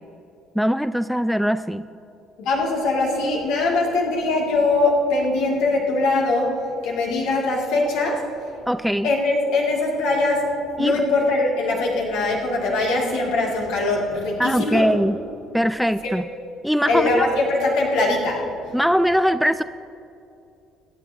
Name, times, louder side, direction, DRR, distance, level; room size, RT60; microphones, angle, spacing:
voice 1, 0.6-1.9 8.7-9.1 10.8-11.0 14.4-15.2 15.5-16.3 16.6-17.3 18.7-19.6, equal, ahead, 12 dB, 0.3 m, -21 dB
voice 2, 2.4-6.5 6.8-8.2 9.0-10.5 10.8-14.9 16.9-18.4, left 2 dB, 60° left, -2 dB, 2.4 m, -21 dB
22.5 x 10.0 x 2.8 m, 2.6 s
figure-of-eight pair, 55°, 0 cm